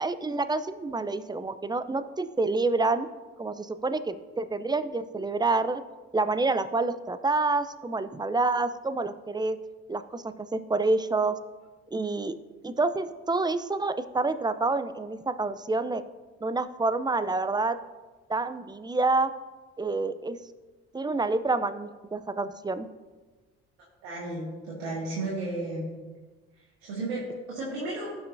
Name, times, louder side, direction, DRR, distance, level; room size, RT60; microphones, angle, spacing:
voice 1, 0.0-3.1 3.4-5.8 6.1-9.6 9.9-11.4 11.9-12.4 12.6-16.0 16.4-17.8 18.3-19.3 19.8-20.4 20.9-22.9, right 3 dB, 15° right, 12 dB, 0.6 m, -28 dB
voice 2, 24.0-26.0 26.8-28.2, right 2 dB, 85° right, -6 dB, 1.9 m, -33 dB
16.5 x 5.6 x 2.7 m, 1.3 s
hypercardioid pair, 55°, 32 cm